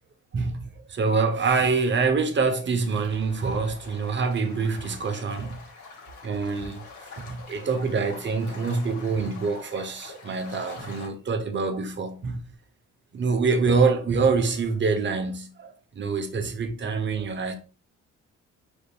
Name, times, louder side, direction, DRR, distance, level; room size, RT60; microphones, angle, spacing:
voice 1, 0.3-5.6 6.2-6.8 7.2-12.4 13.1-17.5, right 4 dB, 40° right, 0.9 m, -25 dB
sound 1, 2.8-11.1, left 4 dB, 75° left, 2.0 m, -45 dB
5.1 x 4.1 x 2.4 m
cardioid pair, 90°, 30 cm